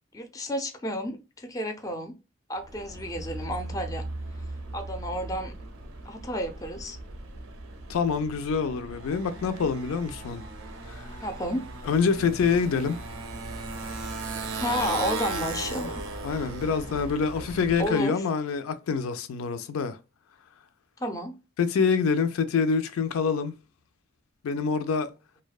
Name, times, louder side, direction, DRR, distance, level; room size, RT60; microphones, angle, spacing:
voice 1, 0.1-2.1 2.5-4.0 4.7-5.5 6.1-7.0 11.2-11.6 14.6-16.1 17.8-18.1 21.0-21.4, equal, 15° left, 0.4 m, -31 dB
Motorcycle, 2.6-18.0, right 2 dB, 75° right, 0.5 m, -37 dB
voice 2, 7.9-10.4 10.9-11.1 11.8-13.0 16.2-20.0 21.6-23.5 24.4-25.1, left 5 dB, 90° left, 0.4 m, -26 dB
2.6 x 2.1 x 2.3 m
head